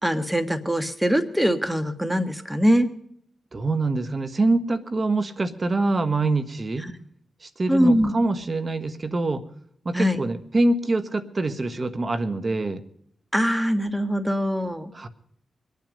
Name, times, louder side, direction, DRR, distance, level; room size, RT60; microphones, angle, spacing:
voice 1, 0.0-2.9 6.8-6.9 7.7-8.1 9.9-10.2 13.3-14.9, equal, 5° right, 10 dB, 1.6 m, -22 dB
voice 2, 3.5-6.9 7.4-9.4 9.8-12.8 14.9-15.1, right 2 dB, 45° right, 11 dB, 1.3 m, -25 dB
24.0 x 9.4 x 5.2 m, 0.69 s
cardioid pair, 60°, 0 cm